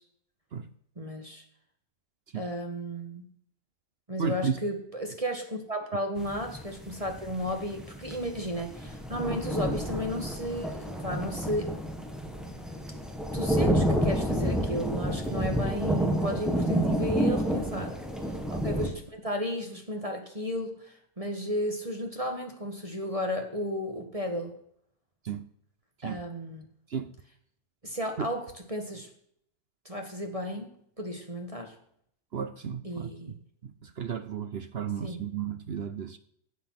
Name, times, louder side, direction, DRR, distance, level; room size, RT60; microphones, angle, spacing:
voice 1, 0.9-1.4 2.3-3.3 4.1-11.7 13.3-18.0 18.5-24.5 26.0-26.6 27.8-29.1 29.8-30.7 31.0-31.8 32.8-33.3 35.0-35.2, equal, 20° right, 4 dB, 1.6 m, -34 dB
voice 2, 4.2-4.6 9.3-9.4 17.8-17.9 25.2-25.4 26.0-26.2 26.9-27.1 28.2-28.3 32.3-33.4 33.6-36.2, right 7 dB, 60° right, 11 dB, 0.6 m, -33 dB
sound 1, 6.2-18.9, equal, ahead, 1.5 m, -30 dB
17.5 x 7.2 x 5.9 m, 0.68 s
omnidirectional pair, 1.8 m